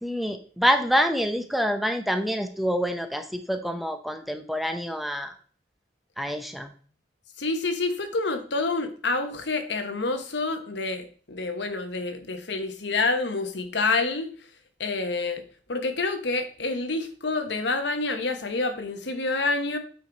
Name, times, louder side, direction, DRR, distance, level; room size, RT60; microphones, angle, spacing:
voice 1, 0.0-5.3 6.2-6.7, equal, ahead, 7 dB, 0.6 m, -26 dB
voice 2, 7.4-14.3 14.8-15.4 15.7-19.8, left 3 dB, 75° left, 7 dB, 1.1 m, -28 dB
8.3 x 4.7 x 3.9 m, 0.43 s
head